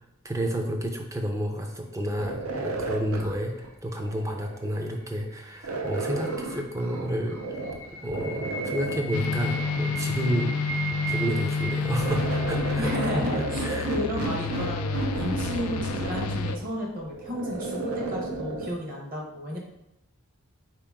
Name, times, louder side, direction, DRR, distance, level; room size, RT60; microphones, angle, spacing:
voice 1, 0.2-7.6 8.0-10.6 11.1-13.2 13.6-13.9, right 1 dB, 15° right, 3 dB, 0.4 m, -30 dB
sound 1, 2.2-4.9 5.6-7.8 8.1-9.9 10.9-18.7, right 3 dB, 80° right, 0.6 m, -33 dB
sound 2, 5.1-14.1, right 3 dB, 65° right, 1.2 m, -39 dB
sound 3, 9.1-16.6, left 5 dB, 90° left, 0.3 m, -30 dB
voice 2, 12.8-19.6, equal, 40° right, -1 dB, 1.1 m, -33 dB
4.4 x 2.9 x 3.5 m, 0.84 s
head